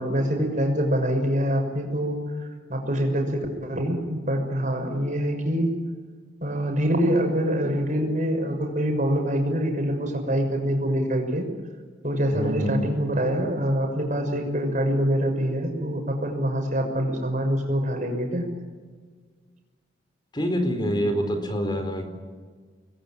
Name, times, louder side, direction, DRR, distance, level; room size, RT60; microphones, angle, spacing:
voice 1, 0.0-5.7 6.4-11.5 12.0-18.5, equal, 45° right, 3 dB, 6.4 m, -25 dB
voice 2, 12.3-12.9 20.3-22.1, equal, 25° left, 6 dB, 4.2 m, -26 dB
28.0 x 21.5 x 8.9 m, 1.5 s
head